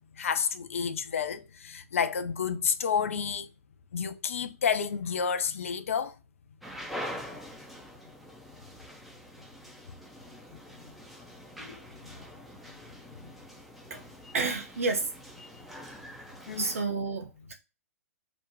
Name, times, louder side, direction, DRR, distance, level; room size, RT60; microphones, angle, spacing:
voice 1, 0.2-3.5 3.9-6.1 10.5-10.9 11.6-12.1 13.2-13.3 16.5-16.7, left 6 dB, 60° left, 0.3 m, -30 dB
sound 1, 6.6-16.8, equal, ahead, 0.4 m, -45 dB
voice 2, 14.3-15.1 16.6-17.5, right 4 dB, 65° right, 0.6 m, -30 dB
2.5 x 2.1 x 2.9 m
figure-of-eight pair, 110°, 8 cm